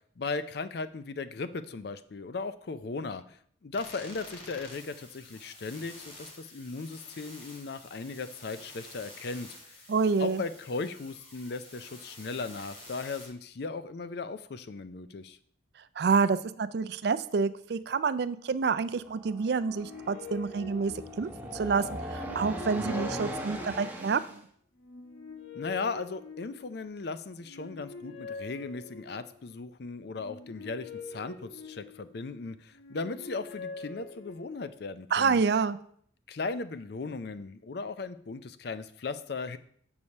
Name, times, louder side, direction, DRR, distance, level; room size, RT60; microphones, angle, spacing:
voice 1, 0.2-9.5 10.2-15.4 25.5-35.4 36.3-39.6, left 4 dB, 55° left, 12 dB, 0.5 m, -37 dB
sound 1, 3.7-13.3, left 2 dB, 30° left, 2.1 m, -49 dB
voice 2, 9.9-10.4 16.0-20.9 21.2-24.4 35.1-35.8, right 5 dB, 55° right, 14 dB, 0.4 m, -28 dB
sound 2, 18.9-24.4, right 1 dB, 10° right, 0.8 m, -39 dB
sound 3, 19.5-21.6 22.1-24.1 24.8-26.9 27.4-29.4 30.1-32.3 32.7-34.8, left 4 dB, 85° left, 1.0 m, -45 dB
7.1 x 4.8 x 5.3 m, 0.62 s
head